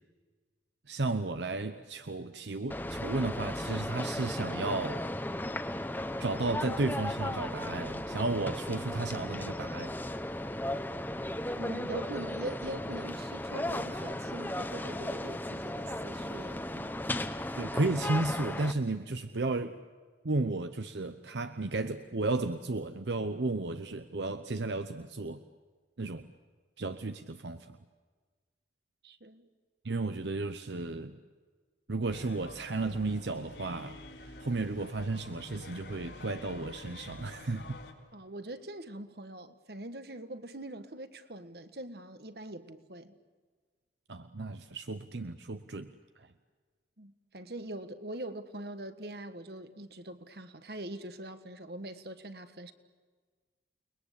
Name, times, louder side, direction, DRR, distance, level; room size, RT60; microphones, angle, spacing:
voice 1, 0.9-5.0 6.2-10.0 17.5-19.8 20.2-25.4 26.0-26.3 26.8-27.8 29.8-31.2 31.9-37.8 44.1-46.3, right 2 dB, 80° right, 9 dB, 0.9 m, -33 dB
sound 1, 2.7-18.7, left 1 dB, 10° left, 1.0 m, -36 dB
voice 2, 11.6-17.0 29.0-29.5 38.1-43.2 47.0-52.7, right 1 dB, 65° right, 10 dB, 1.5 m, -43 dB
sound 2, 32.1-37.9, left 2 dB, 80° left, 3.9 m, -48 dB
29.5 x 21.0 x 8.3 m, 1.5 s
head